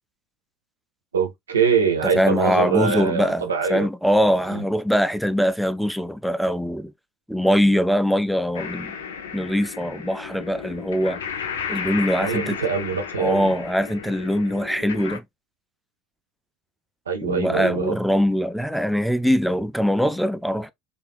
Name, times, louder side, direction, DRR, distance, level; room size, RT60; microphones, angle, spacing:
voice 1, 1.1-3.9 4.5-4.6 12.2-13.5 17.1-18.0, right 6 dB, 80° right, 0.7 m, -23 dB
voice 2, 2.1-6.9 7.3-8.9 9.3-11.2 11.7-12.6 13.2-15.2 17.2-20.7, equal, ahead, 0.4 m, -22 dB
sound 1, 8.5-15.2, left 6 dB, 75° left, 0.5 m, -33 dB
3.3 x 2.6 x 2.3 m
figure-of-eight pair, 65°, 0 cm